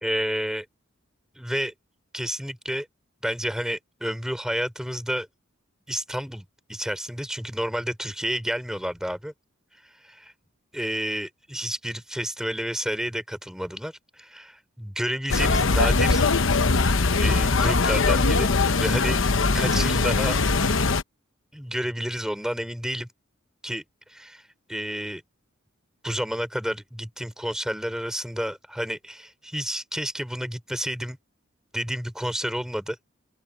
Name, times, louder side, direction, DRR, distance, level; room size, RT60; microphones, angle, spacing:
voice 1, 0.0-0.7 1.4-1.7 2.1-2.9 3.2-5.3 5.9-9.3 10.0-10.3 10.7-16.2 17.1-18.5 18.8-19.2 19.5-20.4 21.5-23.1 23.6-23.8 24.1-24.4 24.7-25.2 26.0-31.2 31.7-33.0, equal, 5° right, 3.4 m, -30 dB
sound 1, 15.3-21.0, left 3 dB, 70° left, 1.0 m, -21 dB
open air
head